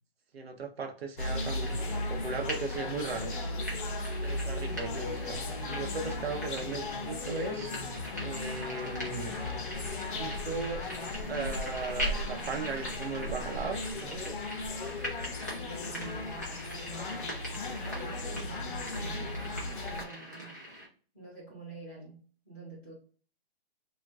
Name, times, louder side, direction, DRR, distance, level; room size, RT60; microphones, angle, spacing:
voice 1, 0.3-3.3 4.2-7.7 8.2-9.3 10.1-10.8 11.3-14.3, right 4 dB, 75° right, 3 dB, 0.8 m, -37 dB
sound 1, 1.2-20.0, left 2 dB, 55° left, 0.6 m, -36 dB
sound 2, 1.4-20.9, equal, 20° right, 0.4 m, -42 dB
voice 2, 15.7-17.2 17.7-19.5 19.8-20.5 21.1-22.9, right 3 dB, 10° left, -9 dB, 0.7 m, -47 dB
2.3 x 2.2 x 3.4 m, 0.42 s
hypercardioid pair, 170°, 31 cm